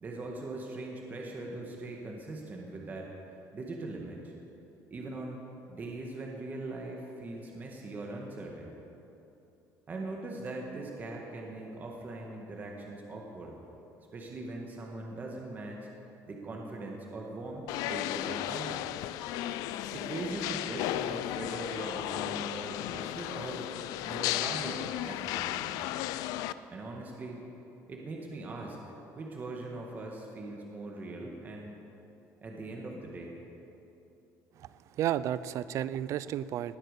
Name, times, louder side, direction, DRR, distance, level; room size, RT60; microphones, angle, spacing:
voice 1, 0.0-3.1 3.5-4.3 4.9-5.4 5.7-8.8 9.9-13.6 14.1-15.9 16.3-18.9 19.9-23.7 24.1-25.9 26.7-27.4 27.9-28.8 29.1-31.8 32.4-33.4, right 2 dB, 30° right, 0 dB, 1.8 m, -41 dB
sound 1, 17.7-26.5, left 14 dB, 85° left, 0.4 m, -34 dB
voice 2, 34.6-36.8, right 11 dB, 55° right, 17 dB, 0.5 m, -32 dB
19.0 x 8.8 x 6.7 m, 3.0 s
cardioid pair, 140°, 6 cm